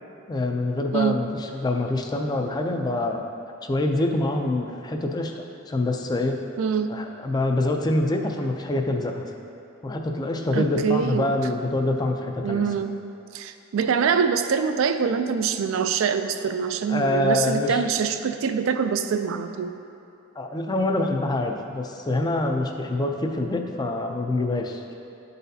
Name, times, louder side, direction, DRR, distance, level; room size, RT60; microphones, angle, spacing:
voice 1, 0.3-3.3 3.6-6.4 6.9-9.3 9.8-12.6 16.9-17.8 20.4-24.9, left 2 dB, 20° left, 3 dB, 0.4 m, -25 dB
voice 2, 6.6-6.9 10.5-11.3 12.4-12.9 13.3-19.7, right 6 dB, 75° right, 9 dB, 0.3 m, -24 dB
11.0 x 4.0 x 2.7 m, 2.7 s
head